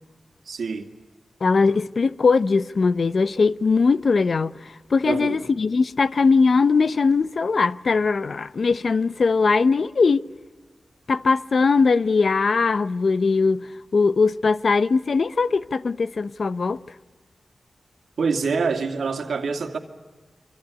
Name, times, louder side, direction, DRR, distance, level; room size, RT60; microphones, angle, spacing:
voice 1, 0.5-0.9 5.1-5.4 18.2-19.8, right 5 dB, 90° right, 2.4 m, -25 dB
voice 2, 1.4-10.3 11.1-16.8, left 4 dB, 65° left, 0.7 m, -20 dB
26.0 x 25.5 x 8.4 m
wide cardioid pair, 70°, 0 cm